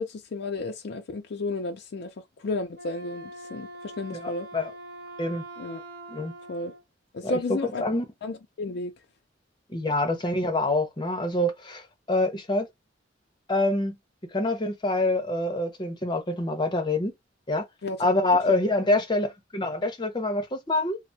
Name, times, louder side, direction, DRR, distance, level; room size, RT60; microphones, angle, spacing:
voice 1, 0.0-2.1 2.4-4.5 5.6-5.8 6.5-6.7 7.1-7.8 8.2-8.9 17.8-18.4, left 3 dB, 60° left, 0.4 m, -33 dB
Wind instrument woodwind instrument, 2.7-6.8, right 2 dB, 55° right, 0.8 m, -43 dB
voice 2, 4.1-4.7 5.2-5.4 6.1-6.3 7.2-7.4 7.8-8.0 9.7-11.8 12.1-12.7 13.5-14.0 14.3-17.1 17.5-17.6 18.0-21.0, left 2 dB, 25° left, 0.7 m, -26 dB
3.2 x 2.0 x 2.7 m
head